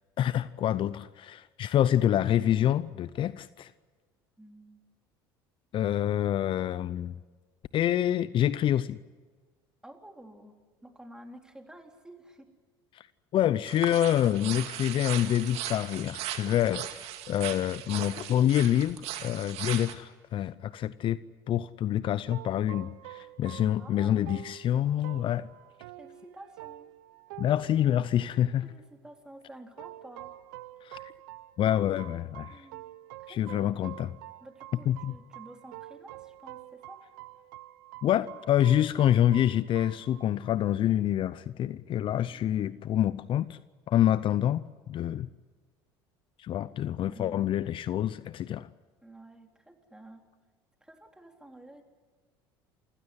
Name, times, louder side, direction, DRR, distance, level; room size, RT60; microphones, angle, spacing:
voice 1, 0.2-3.7 5.7-7.1 7.7-9.0 12.9-13.0 13.3-21.2 21.5-25.5 27.4-28.7 30.8-31.0 31.6-32.6 33.3-34.1 34.9-35.1 38.0-43.6 43.9-44.6 44.9-45.3 46.4-48.7, left 11 dB, 50° left, 17 dB, 0.6 m, -27 dB
voice 2, 4.4-4.9 9.8-12.5 23.6-24.5 26.0-26.9 28.3-30.3 32.5-32.9 33.2-33.9 34.4-37.1 42.3-42.8 47.0-47.5 48.5-48.6 49.0-50.2 50.8-51.9, right 1 dB, 5° right, 4 dB, 3.7 m, -51 dB
sound 1, 13.6-19.9, right 12 dB, 65° right, 2.2 m, -38 dB
sound 2, 22.3-28.9 29.8-40.6, right 16 dB, 80° right, 0.8 m, -47 dB
27.5 x 16.0 x 9.9 m, 1.5 s
supercardioid pair, 80°, 11 cm